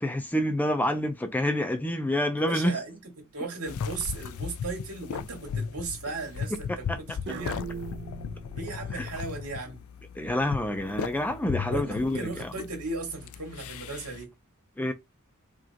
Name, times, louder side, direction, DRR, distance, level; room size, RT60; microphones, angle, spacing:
voice 1, 0.0-2.7 6.5-7.2 8.9-9.1 10.2-12.5 14.8-14.9, left 1 dB, 10° left, 0.5 m, -28 dB
voice 2, 2.4-3.0 3.3-7.7 8.5-9.8 11.7-14.3, right 3 dB, 85° right, 1.9 m, -36 dB
sound 1, 3.4-3.8 4.5-5.0 7.3-9.2, right 5 dB, 55° right, 0.7 m, -42 dB
sound 2, 3.7-14.2, left 7 dB, 65° left, 0.3 m, -37 dB
4.9 x 2.5 x 2.8 m
head